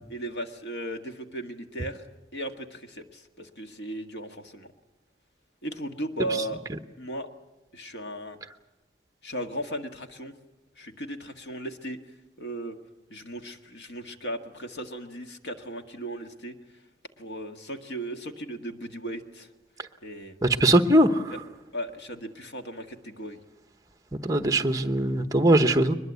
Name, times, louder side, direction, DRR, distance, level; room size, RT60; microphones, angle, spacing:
voice 1, 0.1-2.0 2.3-4.7 5.6-6.6 7.0-7.3 7.7-8.4 9.2-10.3 10.8-12.0 12.4-12.8 13.1-16.6 17.2-19.5 20.0-20.4 21.3-21.4 21.7-23.4, right 1 dB, 85° left, 5 dB, 1.7 m, -36 dB
voice 2, 20.4-21.3 24.2-26.0, right 1 dB, 20° right, 8 dB, 1.0 m, -21 dB
22.5 x 21.0 x 8.2 m, 1.0 s
head